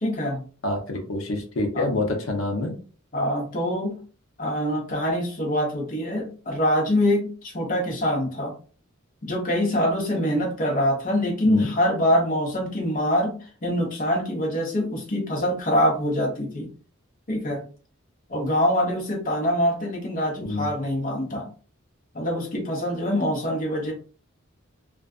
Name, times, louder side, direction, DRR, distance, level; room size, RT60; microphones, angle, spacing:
voice 1, 0.0-0.4 1.7-1.9 3.1-3.9 4.4-8.5 9.3-16.7 17.3-17.6 18.3-21.5 22.1-23.9, equal, 40° left, 0 dB, 0.9 m, -24 dB
voice 2, 0.6-2.8 11.5-11.7 20.4-20.7, left 2 dB, 70° left, 3 dB, 0.7 m, -27 dB
2.4 x 2.3 x 2.4 m, 0.39 s
head